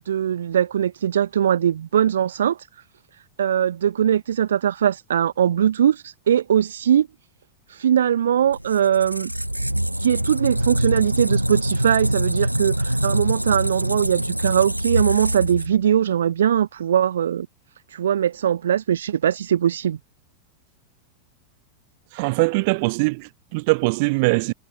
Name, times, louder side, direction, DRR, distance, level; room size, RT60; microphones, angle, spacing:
voice 1, 0.1-2.6 3.4-7.1 7.7-9.3 10.0-17.5 17.9-20.0, right 9 dB, 65° right, 0.7 m, -21 dB
Squeak, 8.4-16.1, right 1 dB, 90° right, 2.4 m, -24 dB
voice 2, 22.1-24.5, right 27 dB, 45° right, 1.7 m, -21 dB
figure-of-eight pair, 90°, 0 cm